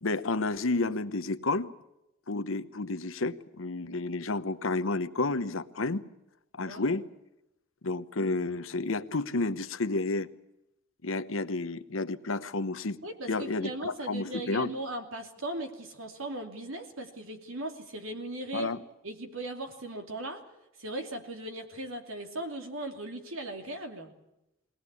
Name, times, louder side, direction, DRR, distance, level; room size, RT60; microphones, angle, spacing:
voice 1, 0.0-1.7 2.3-6.0 6.6-7.0 7.8-10.3 11.0-13.0 13.3-14.7 18.5-18.8, left 3 dB, 75° left, 12 dB, 1.0 m, -31 dB
voice 2, 6.6-7.0 13.0-18.7 19.0-20.4 20.8-24.1, right 1 dB, 85° right, 5 dB, 2.9 m, -38 dB
21.5 x 18.5 x 8.4 m, 0.88 s
head